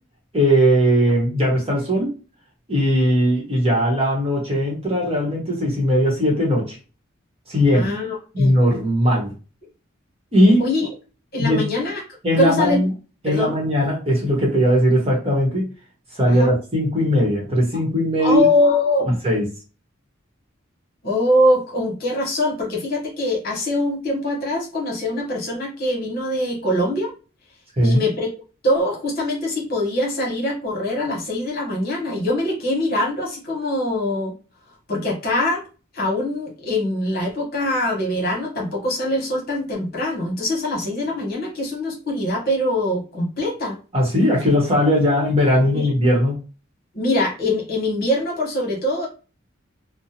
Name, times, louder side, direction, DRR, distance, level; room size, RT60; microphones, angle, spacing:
voice 1, 0.3-2.1 2.7-6.8 7.5-7.9 8.3-9.3 10.3-10.7 11.4-11.6 12.2-12.9 13.2-15.6 16.1-18.5 19.2-19.5 27.8-28.0 43.9-46.4, equal, 30° right, -2 dB, 0.9 m, -18 dB
voice 2, 7.7-8.5 10.6-10.9 11.3-12.0 12.4-12.8 13.3-13.6 16.3-16.5 18.2-19.2 21.0-27.1 27.8-28.3 28.6-34.3 34.9-35.6 35.9-43.8 45.7-45.9 46.9-49.1, left 1 dB, 50° left, -2 dB, 1.1 m, -23 dB
2.6 x 2.0 x 2.8 m, 0.33 s
head